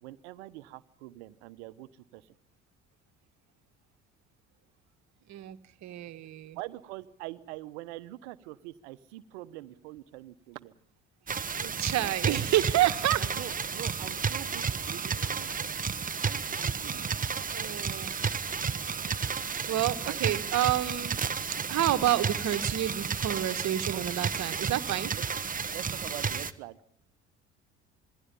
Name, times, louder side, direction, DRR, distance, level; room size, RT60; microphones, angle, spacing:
voice 1, 0.0-2.3 6.5-10.8 12.0-12.8 13.2-15.7 16.2-17.1 20.0-20.3 23.9-24.7 25.1-25.2 25.7-26.8, right 17 dB, 70° right, 13 dB, 1.2 m, -44 dB
voice 2, 5.3-6.6 11.6-13.3 17.5-18.2 19.3-21.2 21.5-25.1, right 13 dB, 55° right, 10 dB, 1.6 m, -29 dB
sound 1, 11.3-26.5, right 6 dB, 25° right, 1.1 m, -32 dB
27.5 x 20.5 x 5.5 m, 0.64 s
hypercardioid pair, 55°, 34 cm